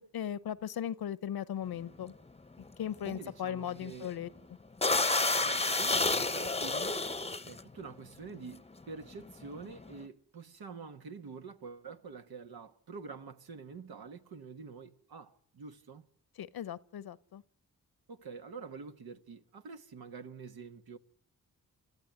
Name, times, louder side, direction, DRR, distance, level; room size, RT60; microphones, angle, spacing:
voice 1, 0.0-2.1 2.8-4.3 16.4-17.4, left 9 dB, 70° left, 0.9 m, -37 dB
sound 1, 1.8-2.1 2.5-2.7 3.0-3.2 3.7-4.0 4.4-4.5 4.8-7.6 8.4-8.6 8.8-10.0, left 3 dB, 15° left, 0.9 m, -30 dB
voice 2, 3.0-4.1 5.4-7.0 7.4-16.0 18.1-21.0, right 5 dB, 75° right, 1.6 m, -47 dB
28.5 x 14.0 x 9.4 m
supercardioid pair, 50°, 38 cm